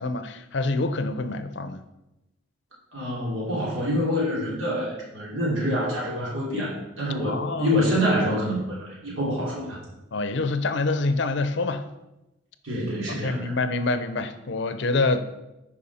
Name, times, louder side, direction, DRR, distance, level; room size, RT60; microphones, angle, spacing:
voice 1, 0.0-1.8 7.2-7.8 10.1-11.8 13.1-15.2, left 3 dB, 60° left, 11 dB, 0.6 m, -26 dB
voice 2, 2.9-9.8 12.6-13.5, equal, 80° right, -5 dB, 3.1 m, -26 dB
10.5 x 4.9 x 4.2 m, 0.95 s
head